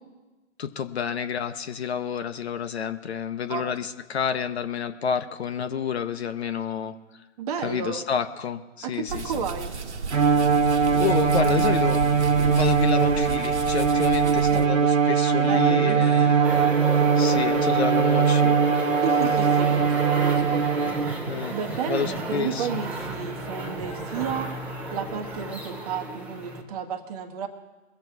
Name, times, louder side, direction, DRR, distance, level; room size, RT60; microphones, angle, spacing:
voice 1, 0.6-6.9 7.6-9.2 11.0-12.0 12.5-16.3 17.2-18.6 21.3-21.6 21.9-22.8, left 7 dB, 55° left, 10 dB, 1.1 m, -29 dB
voice 2, 7.4-8.1 8.8-9.7 14.2-14.8 15.4-16.5 19.0-20.6 21.5-24.5 24.9-27.5, right 6 dB, 30° right, 5 dB, 1.3 m, -32 dB
sound 1, 9.1-14.7, right 4 dB, 60° right, 1.4 m, -32 dB
Bowed string instrument, 10.1-21.3, right 6 dB, 90° right, 1.2 m, -21 dB
sound 2, 16.4-26.6, right 2 dB, 5° right, 0.8 m, -33 dB
22.0 x 7.7 x 4.7 m, 1.2 s
figure-of-eight pair, 135°, 38 cm